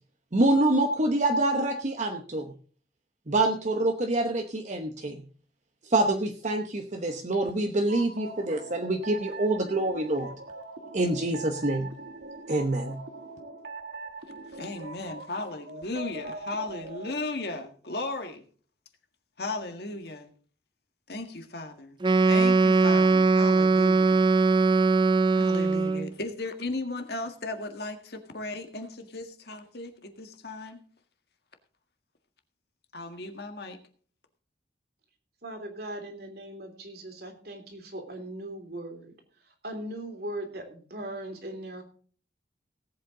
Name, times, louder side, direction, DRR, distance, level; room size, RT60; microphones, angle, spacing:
voice 1, 0.3-2.5 3.3-5.2 5.8-10.3 10.9-11.9 12.5-13.1, right 2 dB, 40° right, 4 dB, 0.9 m, -26 dB
sound 1, 7.9-17.1, right 3 dB, 85° right, 1.7 m, -42 dB
voice 2, 14.5-18.4 19.4-20.3 21.1-22.0 22.3-24.2 25.3-30.8 32.9-33.8, left 2 dB, 60° left, 6 dB, 1.7 m, -36 dB
Wind instrument woodwind instrument, 22.0-26.1, right 3 dB, 25° right, 0.5 m, -21 dB
voice 3, 35.4-39.1 39.6-41.8, right 1 dB, 60° right, 4 dB, 3.2 m, -39 dB
18.0 x 8.3 x 3.8 m, 0.43 s
head